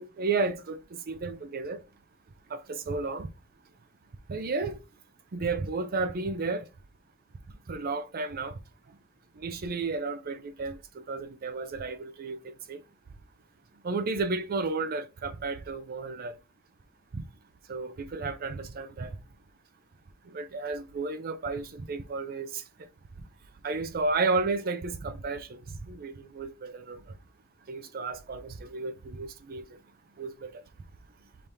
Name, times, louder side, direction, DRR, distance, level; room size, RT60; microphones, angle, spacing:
voice 1, 0.0-1.8 2.5-3.3 4.3-4.8 5.3-6.6 7.7-8.6 9.4-10.8 11.1-12.4 12.7-12.8 13.8-16.3 17.1-17.2 17.7-19.1 20.3-22.6 23.6-27.0 27.7-29.6 30.2-30.5, right 3 dB, 45° right, 0.5 m, -32 dB
5.1 x 2.9 x 3.3 m
head